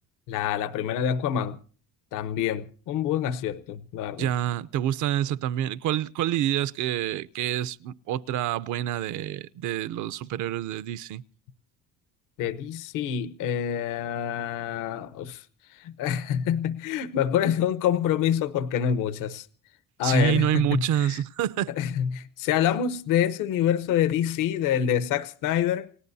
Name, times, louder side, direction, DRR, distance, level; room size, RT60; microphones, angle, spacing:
voice 1, 0.3-1.6 2.1-4.3 12.4-15.4 15.7-19.5 20.0-21.2 21.8-25.9, left 9 dB, 80° left, 1.0 m, -26 dB
voice 2, 4.2-11.2 20.0-21.7, right 11 dB, 70° right, 0.7 m, -27 dB
29.0 x 18.0 x 2.7 m
cardioid pair, 140°, 31 cm